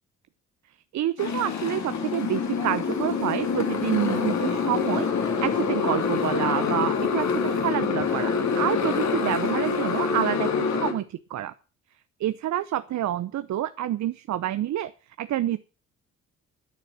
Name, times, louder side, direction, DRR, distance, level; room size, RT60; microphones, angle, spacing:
voice 1, 0.9-5.1 5.4-11.5 12.2-14.9 15.2-15.6, right 12 dB, 55° right, 13 dB, 0.7 m, -28 dB
Motorcycle, 1.2-10.9, left 5 dB, 55° left, 2.8 m, -26 dB
10.5 x 9.3 x 6.2 m, 0.36 s
hypercardioid pair, 50°, 34 cm